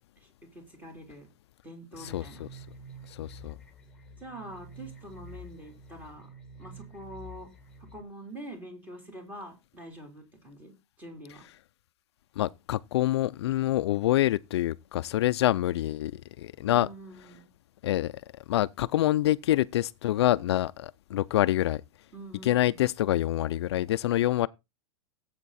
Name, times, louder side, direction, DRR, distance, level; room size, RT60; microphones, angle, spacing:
voice 1, 0.2-1.3 1.6-2.4 4.2-6.3 6.6-7.5 7.8-11.5 16.6-17.4 22.1-22.8, right 1 dB, 10° right, 3.6 m, -45 dB
sound 1, 1.9-8.0, equal, 5° left, 2.1 m, -48 dB
voice 2, 2.0-2.5 3.1-3.6 12.4-16.9 17.8-18.2 18.5-21.8 22.4-24.5, left 14 dB, 60° left, 0.5 m, -26 dB
17.0 x 8.1 x 4.2 m
supercardioid pair, 165°, 15 cm